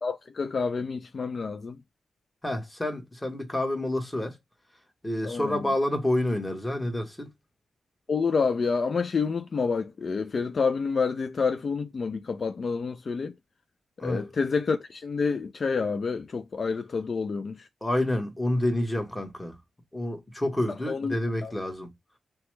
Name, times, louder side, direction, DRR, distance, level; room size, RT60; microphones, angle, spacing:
voice 1, 0.0-1.8 5.2-5.6 8.1-13.3 14.0-17.6 20.9-21.1 21.4-21.5, left 5 dB, 55° left, 0.3 m, -28 dB
voice 2, 2.4-4.3 5.0-7.3 14.0-14.2 17.8-19.5 19.9-21.9, left 1 dB, 15° left, 1.2 m, -28 dB
2.9 x 2.2 x 3.2 m
supercardioid pair, 45°, 0 cm